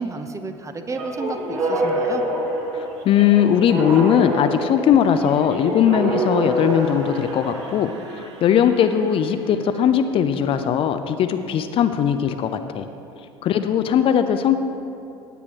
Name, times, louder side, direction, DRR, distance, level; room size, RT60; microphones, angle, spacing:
voice 1, 0.0-2.2, right 3 dB, 20° right, 8 dB, 0.8 m, -31 dB
sound 1, 0.9-7.7, right 1 dB, 50° right, 2.0 m, -26 dB
voice 2, 2.7-12.9 13.4-14.6, left 9 dB, 40° left, 8 dB, 0.5 m, -19 dB
sound 2, 6.2-10.4, right 2 dB, 75° right, 1.1 m, -41 dB
17.0 x 8.4 x 3.1 m, 2.7 s
figure-of-eight pair, 70°, 15 cm